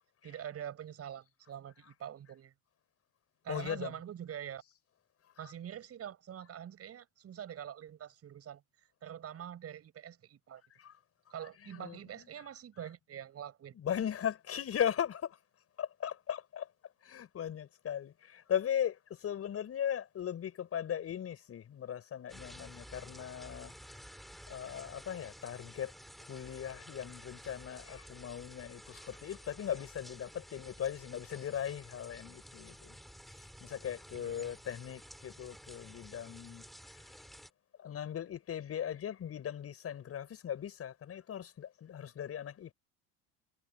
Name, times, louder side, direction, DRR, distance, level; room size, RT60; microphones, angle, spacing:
voice 1, 0.2-2.5 3.4-4.6 5.4-10.6 11.3-13.7 34.1-34.6, right 9 dB, 40° right, 6.9 m, -45 dB
voice 2, 3.5-3.9 5.4-5.5 10.8-10.9 11.4-12.5 12.8-12.9 13.7-15.4 15.8-16.7 17.0-23.7 24.5-25.9 26.3-33.0 33.6-36.6 37.8-42.7, left 9 dB, 40° left, 6.8 m, -38 dB
sound 1, 22.3-37.5, equal, ahead, 6.8 m, -52 dB
supercardioid pair, 100°, 36 cm